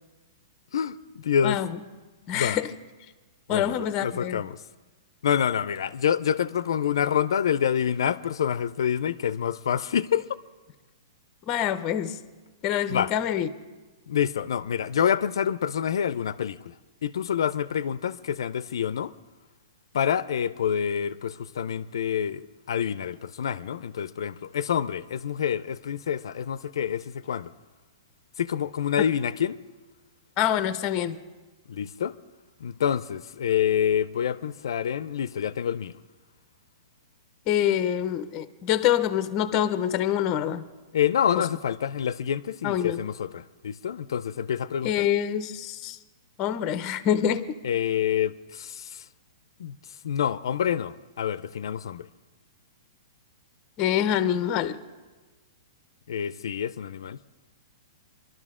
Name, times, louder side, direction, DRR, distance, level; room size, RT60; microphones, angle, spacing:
voice 1, 0.7-1.6 2.3-2.6 3.5-4.6 5.2-10.3 12.9-13.1 14.1-16.7 17.0-19.1 19.9-27.5 28.4-29.6 31.7-32.2 32.6-35.9 40.9-45.1 47.6-49.1 49.6-49.8 50.0-52.1 56.1-57.2, left 8 dB, 80° left, 0.4 m, -27 dB
voice 2, 1.4-1.8 2.3-2.7 3.5-4.4 11.5-12.2 12.6-13.5 30.4-31.2 37.5-40.7 42.6-43.0 44.8-46.0 46.4-47.5 53.8-54.8, left 10 dB, 25° left, 0.5 m, -25 dB
23.0 x 12.5 x 3.7 m
hypercardioid pair, 165°, 2 cm